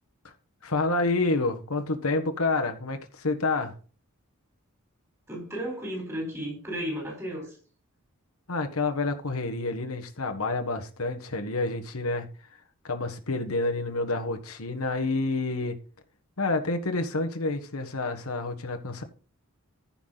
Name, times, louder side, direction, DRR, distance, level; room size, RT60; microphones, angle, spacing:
voice 1, 0.6-3.7 8.5-12.3 12.8-15.8 16.4-19.0, left 3 dB, 80° left, 1.5 m, -28 dB
voice 2, 5.3-7.6, equal, 15° right, 4.3 m, -34 dB
14.5 x 5.9 x 4.0 m
head